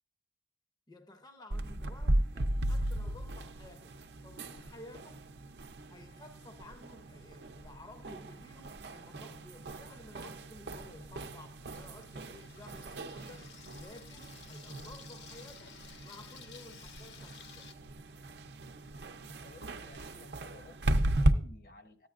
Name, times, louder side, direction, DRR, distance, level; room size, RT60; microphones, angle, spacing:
voice 1, 0.9-4.0 4.2-5.2 5.9-17.8, left 1 dB, 25° left, 0.6 m, -54 dB
sound 1, 1.5-21.3, right 1 dB, 75° right, 0.6 m, -36 dB
Water tap faucet / Sink (filling or washing), 10.9-17.7, left 6 dB, 80° left, 1.1 m, -54 dB
voice 2, 19.4-22.1, left 2 dB, 55° left, 0.8 m, -55 dB
14.0 x 9.4 x 2.4 m
head